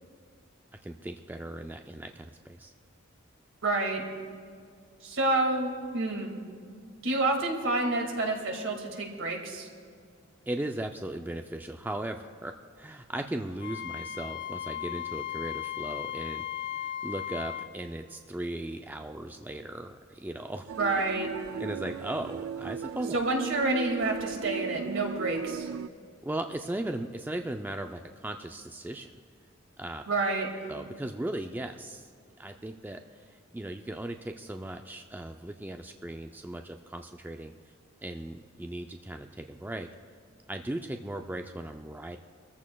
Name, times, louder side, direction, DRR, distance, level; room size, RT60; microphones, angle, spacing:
voice 1, 0.8-2.7 10.5-20.7 21.6-23.2 26.2-29.2 29.8-30.0 30.7-32.1 32.4-37.5 38.0-39.9 40.5-42.2, right 1 dB, 10° right, 5 dB, 0.4 m, -37 dB
voice 2, 3.6-4.0 5.0-6.4 7.0-9.7 20.8-21.3 23.1-25.7 30.1-30.5, right 2 dB, 70° right, 1 dB, 2.1 m, -28 dB
Wind instrument woodwind instrument, 13.6-17.7, left 11 dB, 60° left, 0.6 m, -36 dB
sound 1, 20.7-25.9, right 7 dB, 90° right, 0.3 m, -37 dB
25.5 x 14.5 x 2.3 m, 2.1 s
head